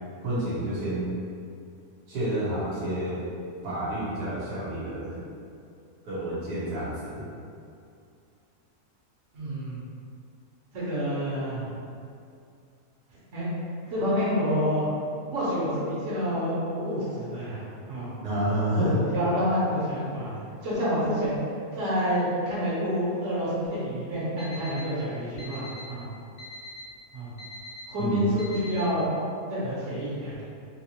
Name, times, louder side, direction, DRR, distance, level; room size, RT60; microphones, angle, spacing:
voice 1, 0.2-1.2 2.1-3.3 3.6-5.3 6.0-7.2 18.2-19.0 28.0-28.3, right 1 dB, 85° right, -9 dB, 1.3 m, -29 dB
voice 2, 9.3-9.8 10.7-11.7 13.3-13.5 13.9-14.9 15.3-17.6 17.9-18.1 18.7-20.3 20.6-21.4 21.7-26.1 27.1-27.3 27.9-29.1 29.5-30.3, equal, 55° right, -9 dB, 1.4 m, -28 dB
Alarm, 24.4-24.8 25.4-25.8 26.4-26.8 27.4-27.8 28.4-28.8, left 1 dB, 75° left, 1.2 m, -41 dB
3.5 x 2.6 x 2.9 m, 2.4 s
omnidirectional pair, 1.6 m